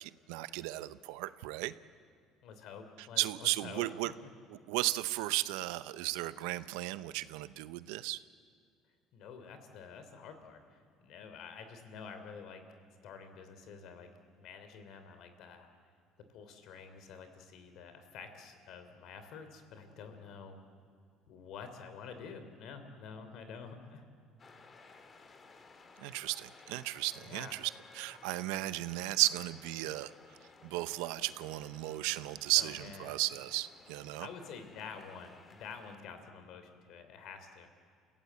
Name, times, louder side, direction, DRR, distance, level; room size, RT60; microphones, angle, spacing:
voice 1, 0.0-1.7 3.0-4.1 4.5-8.2 26.0-30.1 30.6-34.3, right 18 dB, 90° right, 14 dB, 0.7 m, -35 dB
voice 2, 2.4-4.1 9.1-12.6 13.0-14.1 14.4-15.7 16.3-20.6 21.3-24.0 27.2-27.5 32.5-33.2 34.2-37.7, left 6 dB, 65° left, 8 dB, 3.1 m, -48 dB
sound 1, 24.4-36.0, left 4 dB, 30° left, 2.0 m, -58 dB
29.5 x 16.5 x 8.2 m, 2.3 s
cardioid pair, 115°, 0 cm